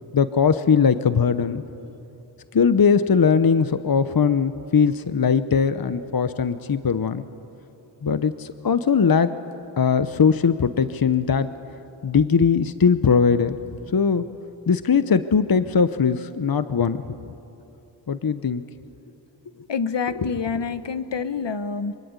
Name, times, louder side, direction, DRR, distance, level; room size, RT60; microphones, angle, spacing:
voice 1, 0.1-1.6 2.5-7.2 8.0-9.4 9.8-11.5 12.0-13.6 13.9-14.2 14.7-17.0 18.1-18.6, left 6 dB, 50° left, 12 dB, 0.9 m, -20 dB
voice 2, 19.7-22.0, left 5 dB, 65° left, 12 dB, 1.3 m, -27 dB
25.5 x 24.0 x 9.6 m, 3.0 s
cardioid pair, 45°, 46 cm